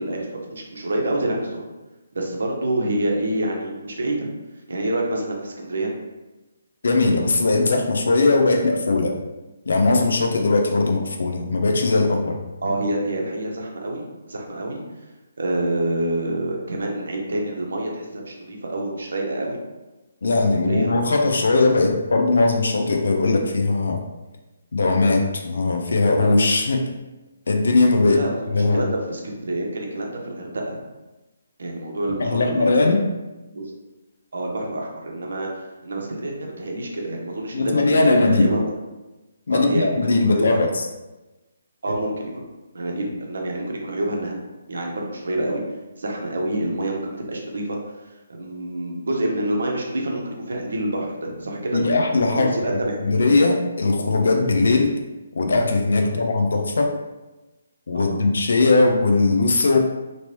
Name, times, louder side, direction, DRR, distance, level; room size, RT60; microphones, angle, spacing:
voice 1, 0.0-1.6 2.1-4.3 4.7-6.0 12.6-14.8 15.4-19.6 20.2-20.9 28.0-30.8 31.6-32.9 33.5-33.6 34.3-38.7 39.5-40.6 41.8-42.3 42.7-45.6 45.9-47.8 48.0-51.8 52.3-53.0 56.0-56.3 57.9-58.2, right 1 dB, 65° right, 0 dB, 0.7 m, -27 dB
voice 2, 6.8-9.1 9.7-12.4 20.2-24.0 24.7-26.9 27.5-28.2 28.5-28.9 32.2-33.0 37.5-38.5 39.5-40.8 51.7-52.5 53.0-55.0 55.4-56.9 57.9-59.8, left 3 dB, 65° left, 3 dB, 0.5 m, -19 dB
3.0 x 2.9 x 2.9 m, 1.1 s
figure-of-eight pair, 140°, 0 cm